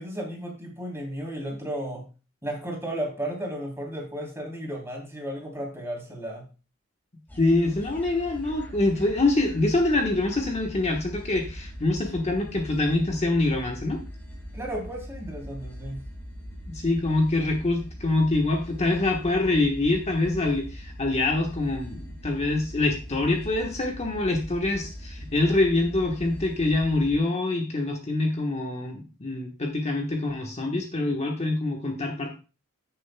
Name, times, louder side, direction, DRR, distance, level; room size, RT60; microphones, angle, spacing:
voice 1, 0.0-2.1 2.4-6.5 14.5-16.0, right 1 dB, 15° right, -1 dB, 3.2 m, -34 dB
sound 1, 7.3-27.2, equal, 10° left, 2.1 m, -41 dB
voice 2, 7.4-14.0 16.7-32.3, left 2 dB, 35° left, 2 dB, 1.2 m, -25 dB
15.0 x 6.8 x 2.2 m, 0.32 s
head